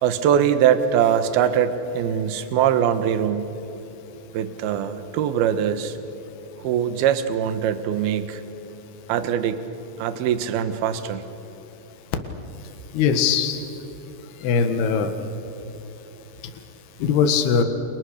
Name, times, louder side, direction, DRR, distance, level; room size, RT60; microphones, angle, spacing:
voice 1, 0.0-3.5 4.3-6.0 6.6-8.4 9.1-9.6 10.0-11.2, right 9 dB, 70° right, 11 dB, 2.8 m, -22 dB
voice 2, 12.9-13.6 14.4-15.1 17.0-17.6, left 6 dB, 70° left, 7 dB, 3.5 m, -20 dB
30.0 x 26.5 x 6.6 m, 2.8 s
omnidirectional pair, 5.1 m